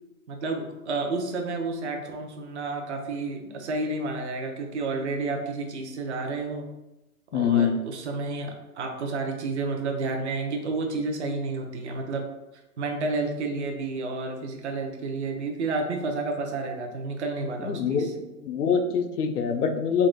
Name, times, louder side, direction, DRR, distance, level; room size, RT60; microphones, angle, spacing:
voice 1, 0.3-6.7 7.3-12.2 12.8-18.1, right 3 dB, 50° right, 3 dB, 0.6 m, -30 dB
voice 2, 7.3-7.7 17.6-18.1 18.4-20.1, left 7 dB, 80° left, 6 dB, 0.7 m, -24 dB
3.6 x 2.2 x 3.8 m, 0.98 s
hypercardioid pair, 160°, 46 cm